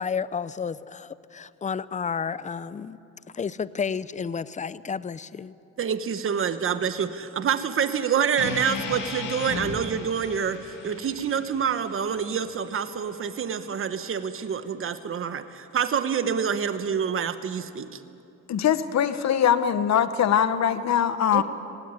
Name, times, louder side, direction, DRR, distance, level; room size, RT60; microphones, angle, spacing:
voice 1, 0.0-3.0 3.3-5.5, left 6 dB, 25° left, 17 dB, 0.6 m, -31 dB
voice 2, 5.8-18.0 21.3-21.4, right 7 dB, 45° right, 11 dB, 1.1 m, -27 dB
sound 1, 8.4-12.6, left 5 dB, 80° left, 2.2 m, -36 dB
voice 3, 18.5-21.4, left 9 dB, 60° left, 12 dB, 1.1 m, -22 dB
18.0 x 17.5 x 9.7 m, 2.8 s
cardioid pair, 90°, 30 cm